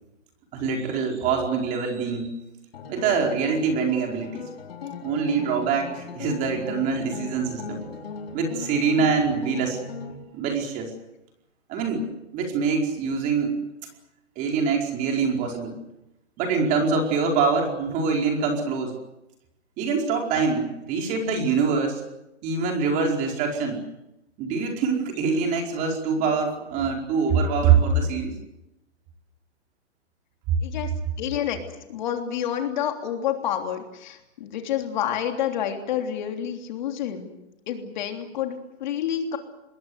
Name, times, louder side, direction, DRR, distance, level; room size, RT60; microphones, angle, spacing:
voice 1, 0.5-2.3 2.9-4.5 5.0-7.8 8.3-9.8 10.1-10.9 11.7-12.1 12.3-13.6 14.4-15.8 16.4-18.9 19.8-22.0 22.4-23.8 24.4-28.3, right 5 dB, 20° right, 2 dB, 4.8 m, -24 dB
sound 1, 2.7-10.1, left 5 dB, 55° left, 4.3 m, -38 dB
voice 2, 30.6-30.9 31.2-31.6 31.9-37.3 37.7-39.4, left 9 dB, 40° left, 4 dB, 3.3 m, -28 dB
26.5 x 21.5 x 8.1 m, 0.89 s
hypercardioid pair, 160°, 35 cm